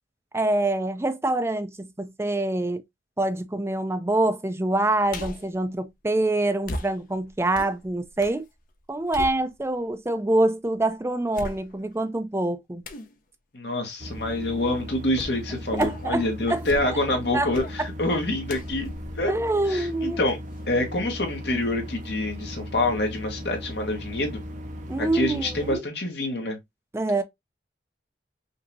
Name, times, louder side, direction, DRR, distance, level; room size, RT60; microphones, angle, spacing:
voice 1, 0.3-2.8 3.2-8.5 8.9-12.8 15.7-16.6 17.3-17.5 17.8-17.9 19.3-20.2 24.9-25.8 26.9-27.2, right 2 dB, 15° right, 0.4 m, -25 dB
sound 1, 5.1-5.6 6.6-8.4 8.8-9.9 10.4-10.5 11.3-12.0 12.8-13.1 15.2-15.4 15.8-16.1 16.5-17.1 17.5-17.8 18.5-20.1 20.5-20.6, left 1 dB, 50° left, 0.7 m, -38 dB
voice 2, 13.5-18.9 19.2-19.3 19.7-20.4 20.7-24.4 25.0-26.6, left 1 dB, 65° left, 1.4 m, -26 dB
sound 2, 14.0-25.8, equal, 45° right, 0.8 m, -37 dB
5.2 x 2.8 x 2.6 m
head